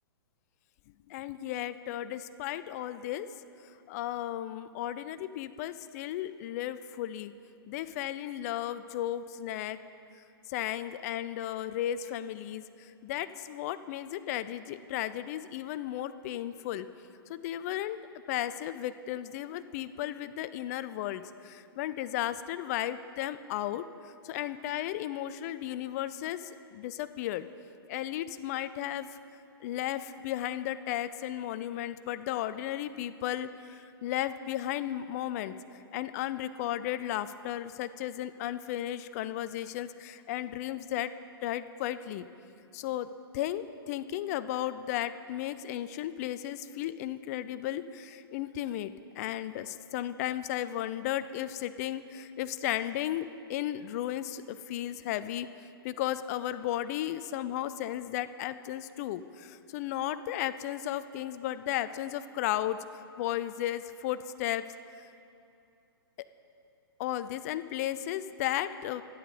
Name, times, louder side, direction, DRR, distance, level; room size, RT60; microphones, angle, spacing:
voice 1, 1.1-3.3 3.9-7.3 7.7-9.8 10.5-16.9 17.3-18.0 18.3-27.5 27.9-29.2 29.6-35.5 35.9-41.1 41.4-42.3 42.7-43.1 43.3-64.6 66.2-66.3 67.0-69.0, left 12 dB, 40° left, 13 dB, 0.4 m, -34 dB
11.5 x 9.4 x 5.0 m, 2.6 s
figure-of-eight pair, 120°, 13 cm